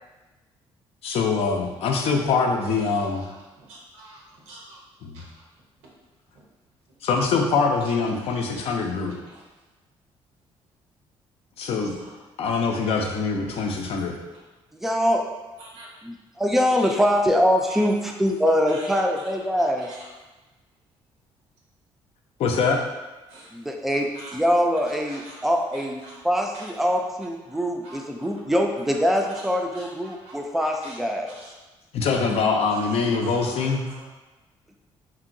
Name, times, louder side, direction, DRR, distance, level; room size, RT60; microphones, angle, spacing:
voice 1, 1.0-3.2 5.0-5.2 7.0-9.2 11.6-11.9 12.4-14.2 22.4-22.8 31.9-33.9, left 4 dB, 65° left, 2 dB, 0.5 m, -23 dB
voice 2, 3.7-4.8 5.1-5.2 8.2-8.3 9.3-9.4 12.0-12.2 13.5-13.7 15.6-15.9 16.8-16.9 17.8-17.9 18.7-19.0 19.6-20.1 23.3-23.5 24.1-24.4 25.1-25.5 25.7-26.3 26.5-26.7 27.5-28.0 29.7-30.4 30.8-31.0 31.3-31.5 32.7-32.8 33.1-34.1, right 2 dB, 90° right, -3 dB, 0.8 m, -45 dB
voice 3, 14.7-15.2 16.0-19.9 23.5-31.4, equal, ahead, 2 dB, 0.3 m, -23 dB
2.9 x 2.6 x 2.6 m, 1.1 s
cardioid pair, 90°, 11 cm